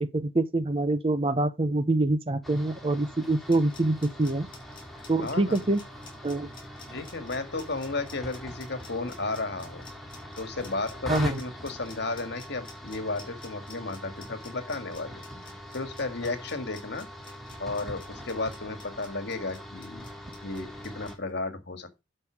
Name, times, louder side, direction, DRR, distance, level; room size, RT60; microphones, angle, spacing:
voice 1, 0.0-4.5 5.1-5.8 6.2-6.5 11.1-11.4, right 2 dB, 25° right, 0.7 m, -25 dB
sound 1, 2.4-21.2, equal, ahead, 2.2 m, -43 dB
sound 2, 3.3-21.1, left 4 dB, 25° left, 5.8 m, -50 dB
voice 2, 5.2-5.6 6.9-9.8 10.4-15.2 15.7-17.1 17.6-20.1 20.4-22.0, left 3 dB, 55° left, 2.0 m, -33 dB
11.5 x 5.6 x 4.7 m
head